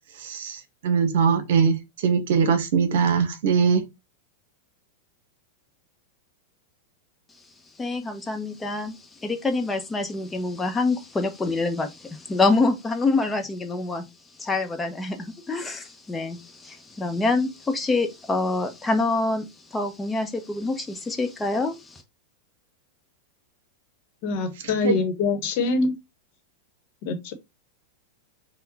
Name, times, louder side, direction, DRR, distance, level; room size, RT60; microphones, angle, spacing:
voice 1, 0.2-3.8 24.8-24.9, right 6 dB, 60° right, 0.9 m, -21 dB
voice 2, 7.8-14.1 14.4-22.0, left 3 dB, 15° left, 0.9 m, -26 dB
voice 3, 24.2-25.9 27.0-27.3, left 3 dB, 50° left, 1.0 m, -24 dB
5.6 x 2.3 x 4.0 m
figure-of-eight pair, 95°, 0 cm